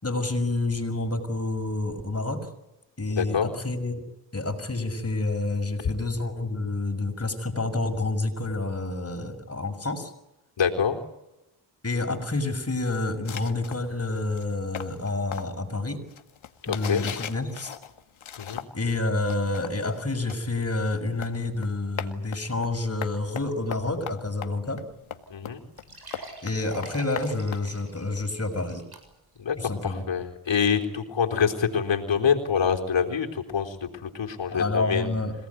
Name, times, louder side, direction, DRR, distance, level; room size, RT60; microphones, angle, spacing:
voice 1, 0.0-2.5 3.0-4.0 4.3-10.1 11.8-16.0 16.7-17.8 18.7-24.8 26.4-28.9 29.6-30.0 34.5-35.3, left 2 dB, 30° left, 5 dB, 6.4 m, -28 dB
voice 2, 3.1-3.5 10.6-11.0 16.7-17.1 18.4-18.6 25.3-25.6 29.4-35.1, left 7 dB, 65° left, 3 dB, 4.2 m, -26 dB
sound 1, 13.3-18.9 19.2-28.2, left 8 dB, 80° left, 2.1 m, -39 dB
sound 2, 24.9-25.0 25.3-25.4 25.8-29.4 29.8-29.9 30.5-30.6, right 2 dB, 50° right, 7.4 m, -46 dB
27.0 x 18.5 x 9.5 m, 0.92 s
cardioid pair, 70°, 47 cm